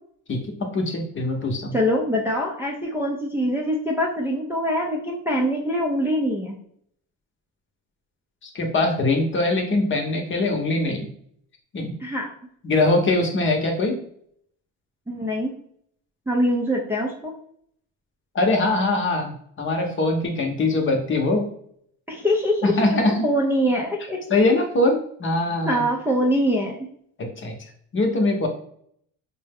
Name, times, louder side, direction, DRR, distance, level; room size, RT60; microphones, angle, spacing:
voice 1, 0.3-1.7 8.4-11.1 11.7-11.9 12.6-14.0 18.3-21.5 22.6-23.2 24.3-25.8 27.2-27.6 27.9-28.5, left 2 dB, 35° left, 3 dB, 0.9 m, -22 dB
voice 2, 1.7-6.6 12.0-12.3 15.1-15.5 16.3-17.3 22.1-24.2 25.7-26.8, equal, 5° right, -3 dB, 0.5 m, -23 dB
4.4 x 2.2 x 3.4 m, 0.65 s
cardioid pair, 120°, 35 cm